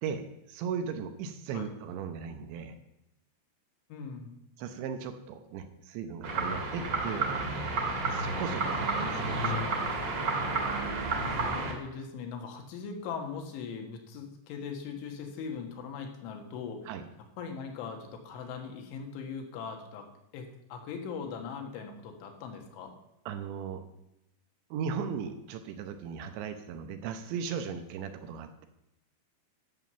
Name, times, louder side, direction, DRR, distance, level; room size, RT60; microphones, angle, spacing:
voice 1, 0.0-2.8 4.6-7.4 8.1-9.7 16.9-17.0 23.3-23.8 24.7-28.7, right 6 dB, 75° right, 8 dB, 3.1 m, -37 dB
voice 2, 3.9-4.3 11.2-16.9 17.4-20.1 20.3-22.9, left 6 dB, 80° left, 3 dB, 3.9 m, -40 dB
sound 1, 6.2-11.7, right 3 dB, 45° right, 2.3 m, -31 dB
12.0 x 7.3 x 6.9 m, 0.87 s
omnidirectional pair, 5.4 m